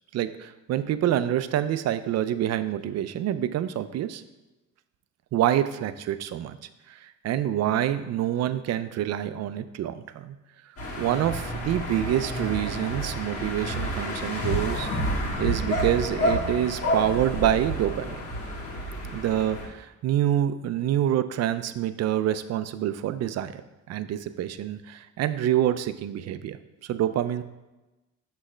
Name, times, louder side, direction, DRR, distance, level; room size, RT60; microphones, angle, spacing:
voice 1, 0.1-4.2 5.3-6.6 6.9-10.4 11.0-14.9 15.4-18.2 19.1-23.6 23.9-26.6 26.8-27.4, right 11 dB, 60° right, 12 dB, 0.4 m, -26 dB
sound 1, 10.8-19.7, equal, 50° left, 1.7 m, -29 dB
6.2 x 3.2 x 4.9 m, 1.1 s
cardioid pair, 90°, 30 cm